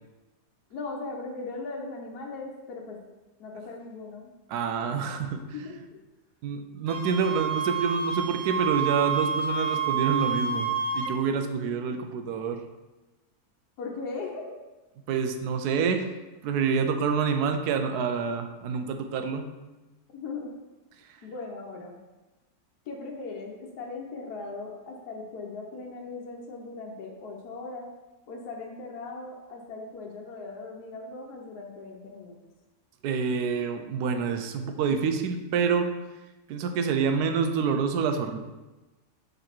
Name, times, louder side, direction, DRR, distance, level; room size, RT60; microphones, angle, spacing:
voice 1, 0.7-3.0 3.4-4.3 4.8-5.1 5.5-6.0 13.8-14.6 20.1-20.5 21.2-22.0 22.9-27.9 28.3-32.4, left 3 dB, 75° left, -1 dB, 1.3 m, -39 dB
voice 2, 4.5-5.4 6.4-10.7 10.9-12.6 15.1-16.0 16.4-19.5 33.0-35.9 36.5-38.4, right 6 dB, 80° right, 7 dB, 1.2 m, -27 dB
Wind instrument woodwind instrument, 6.9-11.2, right 6 dB, 45° right, 0.5 m, -29 dB
6.6 x 3.9 x 4.4 m, 1.1 s
omnidirectional pair, 1.7 m